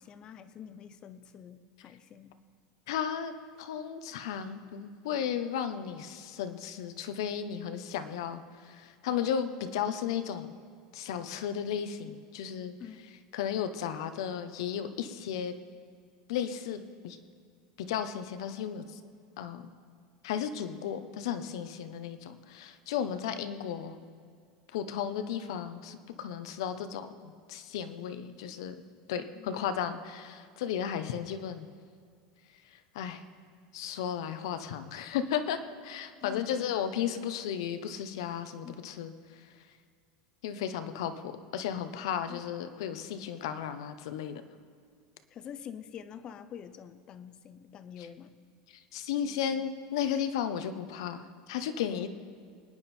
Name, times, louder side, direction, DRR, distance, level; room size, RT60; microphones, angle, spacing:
voice 1, 0.0-2.3 9.1-9.5 12.8-13.1 23.0-23.4 29.3-29.6 36.2-36.7 38.6-38.7 42.3-42.4 45.3-48.4 49.2-49.6 51.9-52.1, left 8 dB, 35° left, 12 dB, 0.8 m, -47 dB
voice 2, 2.9-10.6 10.9-12.7 13.3-15.5 16.3-17.2 17.8-19.0 19.4-19.7 20.2-24.0 24.7-28.8 29.1-31.7 32.6-33.2 33.7-39.5 40.4-44.3 48.0-48.1 48.7-52.1, left 8 dB, 80° left, 10 dB, 1.1 m, -34 dB
24.5 x 9.8 x 4.5 m, 2.2 s
supercardioid pair, 140°, 3 cm